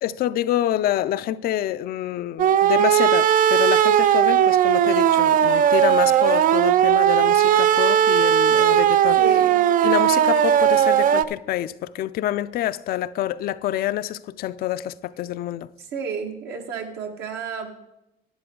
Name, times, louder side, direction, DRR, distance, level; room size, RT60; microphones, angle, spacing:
voice 1, 0.0-9.2 9.8-15.7, left 12 dB, 65° left, 0.4 m, -27 dB
sound 1, 2.4-11.2, right 10 dB, 55° right, 0.4 m, -17 dB
voice 2, 9.2-9.6 15.8-17.8, right 5 dB, 75° right, 1.6 m, -31 dB
11.0 x 9.9 x 3.8 m
cardioid pair, 110°, 17 cm